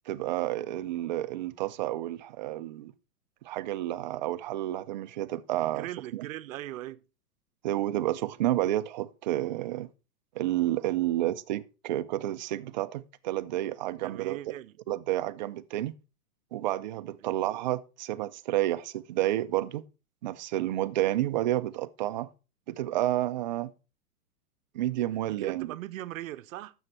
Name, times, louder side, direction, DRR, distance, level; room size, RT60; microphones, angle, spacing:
voice 1, 0.1-2.9 3.4-5.9 6.1-6.3 7.6-9.9 10.4-14.6 14.9-15.9 16.5-19.8 20.2-22.3 22.7-23.7 24.7-25.7, right 14 dB, 35° right, 0.4 m, -30 dB
voice 2, 5.6-7.0 13.9-14.8 17.2-17.3 25.3-26.7, right 14 dB, 60° right, 0.7 m, -40 dB
9.6 x 7.1 x 4.2 m
hypercardioid pair, 140°, 45 cm